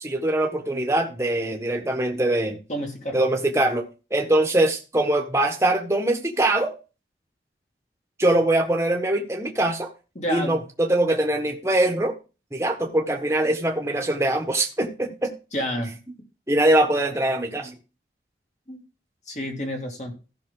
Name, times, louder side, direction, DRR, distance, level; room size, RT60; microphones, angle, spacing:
voice 1, 0.0-2.6 3.1-6.7 8.2-9.9 10.3-12.1 12.5-15.3 16.5-17.7, right 1 dB, 15° right, 3 dB, 1.4 m, -22 dB
voice 2, 2.7-3.2 10.2-10.6 15.5-16.0 18.7-18.8 19.3-20.2, equal, 40° left, 2 dB, 2.6 m, -29 dB
15.0 x 5.9 x 3.8 m, 0.32 s
head